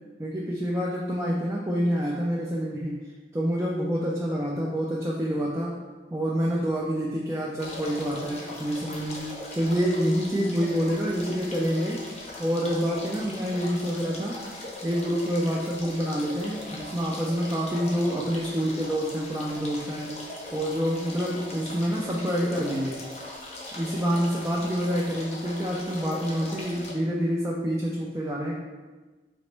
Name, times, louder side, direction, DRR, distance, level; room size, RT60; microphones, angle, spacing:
voice 1, 0.2-3.0 3.3-5.8 6.1-12.0 12.4-14.4 14.8-20.2 20.5-23.0 23.7-28.6, equal, 15° right, -4 dB, 0.3 m, -27 dB
sound 1, 7.6-26.9, left 2 dB, 35° left, 0.6 m, -40 dB
4.1 x 2.9 x 3.2 m, 1.3 s
head